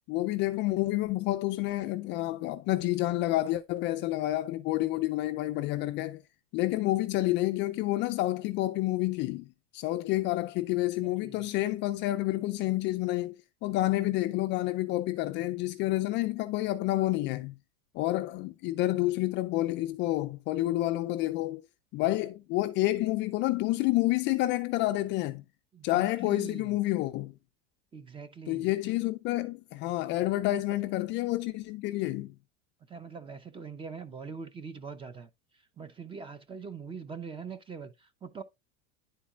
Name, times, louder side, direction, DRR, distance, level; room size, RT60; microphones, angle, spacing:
voice 1, 0.1-6.2 6.5-9.5 9.7-13.4 13.6-17.5 17.9-21.6 21.9-25.4 25.8-27.3 28.5-32.3, left 17 dB, 35° left, 0.4 m, -29 dB
voice 2, 25.7-26.8 27.9-28.7 32.9-35.3 35.8-38.4, right 5 dB, 15° right, 0.6 m, -43 dB
10.0 x 4.2 x 2.4 m
supercardioid pair, 145°, 34 cm